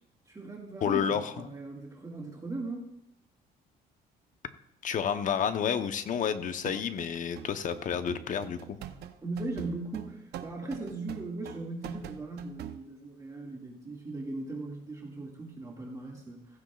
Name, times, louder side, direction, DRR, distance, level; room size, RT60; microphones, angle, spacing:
voice 1, 0.3-2.9 9.2-16.6, right 2 dB, 20° right, -2 dB, 2.1 m, -38 dB
voice 2, 0.8-1.3 4.8-8.8, left 8 dB, 50° left, 10 dB, 0.9 m, -30 dB
sound 1, 6.5-12.8, right 11 dB, 70° right, 0.8 m, -44 dB
15.5 x 15.0 x 2.4 m, 0.83 s
cardioid pair, 110°, 17 cm